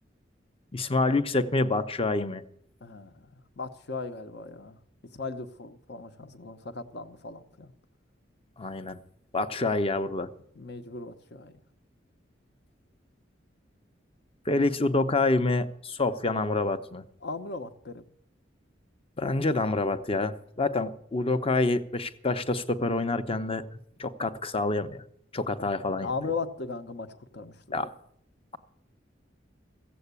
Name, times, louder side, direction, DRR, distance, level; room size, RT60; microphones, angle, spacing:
voice 1, 0.7-2.4 8.6-9.0 9.3-10.3 14.5-17.0 19.2-23.6 24.0-25.0 25.3-26.1 27.7-27.9, left 2 dB, 30° left, 0.7 m, -27 dB
voice 2, 2.8-3.3 3.6-4.8 5.1-7.7 10.6-11.5 17.2-18.1 25.9-27.9, left 4 dB, 60° left, 0.9 m, -37 dB
15.5 x 7.8 x 8.2 m
head